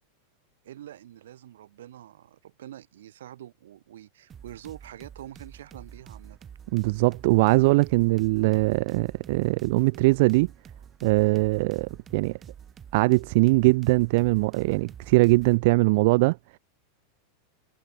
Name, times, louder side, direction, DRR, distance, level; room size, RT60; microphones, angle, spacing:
voice 1, 0.6-6.4, right 12 dB, 80° right, 7.5 m, -45 dB
UK Hardcore Foundation Loop, 4.3-15.6, right 8 dB, 25° right, 0.9 m, -47 dB
voice 2, 6.7-10.5 11.0-12.4 12.9-16.4, right 23 dB, 65° right, 0.5 m, -21 dB
hypercardioid pair, 115°, 0 cm